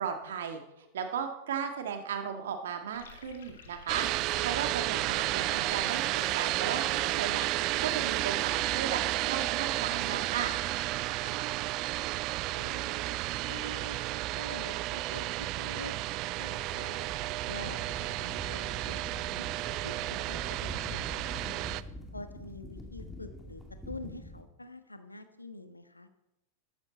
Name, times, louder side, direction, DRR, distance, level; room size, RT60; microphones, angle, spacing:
voice 1, 0.0-4.0 4.4-7.4 7.8-10.6, right 7 dB, 60° right, 6 dB, 1.8 m, -36 dB
sound 1, 2.9-8.8, left 5 dB, 65° left, 2.0 m, -52 dB
sound 2, 3.9-21.8, right 16 dB, 40° right, 0.4 m, -32 dB
voice 2, 11.2-11.5 12.5-13.0 13.5-14.0 14.3-16.0 16.4-17.1 17.4-19.5 19.8-21.7 22.1-23.6 23.9-26.1, left 2 dB, 85° left, 9 dB, 1.2 m, -46 dB
sound 3, 16.6-24.4, left 1 dB, ahead, 2.4 m, -45 dB
13.5 x 12.5 x 4.2 m, 0.89 s
figure-of-eight pair, 90°, 0 cm